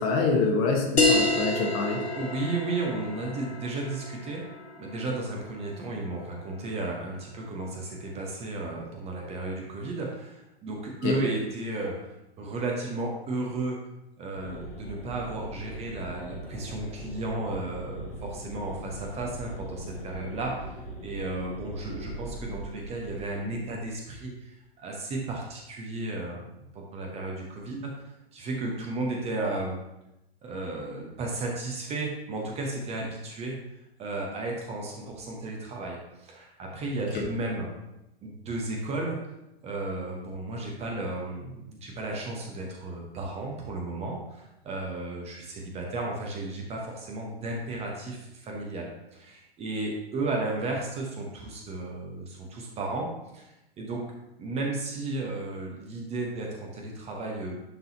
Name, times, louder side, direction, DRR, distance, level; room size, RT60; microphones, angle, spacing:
voice 1, 0.0-2.0 11.0-11.2 37.1-37.2, left 4 dB, 35° left, 1 dB, 1.3 m, -26 dB
sound 1, 1.0-6.1, left 2 dB, 85° left, 1.0 m, -28 dB
voice 2, 2.1-4.5 4.8-12.0 12.4-13.8 14.2-20.7 21.0-26.4 26.7-28.0 28.3-29.8 30.4-33.6 34.0-37.7 38.2-39.2 39.6-54.1 54.4-57.6, right 2 dB, 20° right, 0 dB, 1.0 m, -34 dB
sound 2, 14.3-24.0, right 1 dB, 60° left, 1.2 m, -41 dB
10.5 x 4.0 x 2.8 m, 0.90 s
figure-of-eight pair, 105°, 31 cm